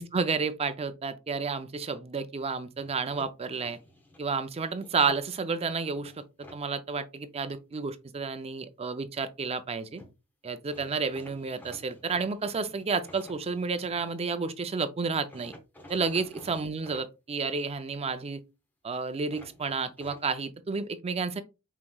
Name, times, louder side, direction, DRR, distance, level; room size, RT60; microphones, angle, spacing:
voice 1, 0.0-3.8 4.2-6.1 6.5-10.0 10.4-15.5 15.9-18.4 18.8-21.4, right 4 dB, 25° right, 0.4 m, -31 dB
sound 1, 2.8-4.2 4.8-5.6 6.0-6.6 9.7-9.8 10.0-10.1 10.7-14.2 15.3-17.1 19.3-20.3, left 1 dB, 10° left, 0.8 m, -51 dB
5.6 x 3.0 x 2.3 m
head